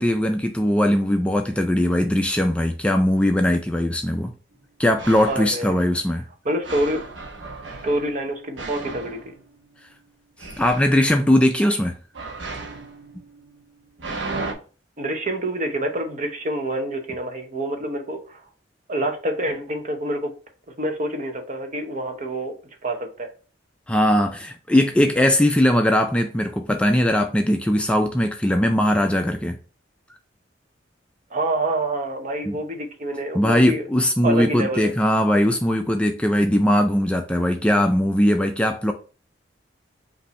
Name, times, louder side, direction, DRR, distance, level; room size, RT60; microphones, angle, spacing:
voice 1, 0.0-4.3 4.8-6.2 10.6-11.9 23.9-29.6 32.5-32.6 33.3-38.9, left 1 dB, 5° left, 0.3 m, -20 dB
sound 1, 4.5-4.6 5.0-5.6 6.6-9.9 10.4-11.1 12.1-14.5, right 3 dB, 75° right, 0.8 m, -35 dB
voice 2, 5.3-5.8 6.4-7.0 7.8-9.3 15.0-18.4 18.9-20.3 20.8-22.5 22.8-23.3 31.3-33.9 34.2-34.9, right 1 dB, 45° right, 0.8 m, -27 dB
5.4 x 2.6 x 3.1 m
head